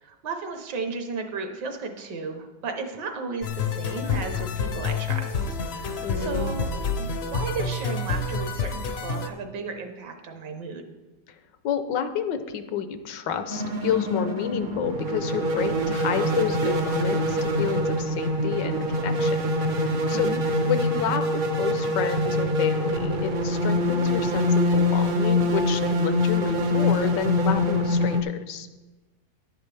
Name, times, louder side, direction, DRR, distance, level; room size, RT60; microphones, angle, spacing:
voice 1, 0.0-5.3 5.7-6.7 7.0-10.9 20.1-20.4, right 4 dB, 75° right, 6 dB, 1.6 m, -34 dB
sound 1, 3.4-9.3, left 4 dB, 60° left, 0.6 m, -28 dB
voice 2, 6.0-6.5 11.6-20.3 20.6-28.7, left 8 dB, 85° left, 9 dB, 1.4 m, -30 dB
sound 2, 13.5-28.2, left 1 dB, 60° right, 0.5 m, -24 dB
11.0 x 8.7 x 3.4 m, 1.1 s
omnidirectional pair, 1.9 m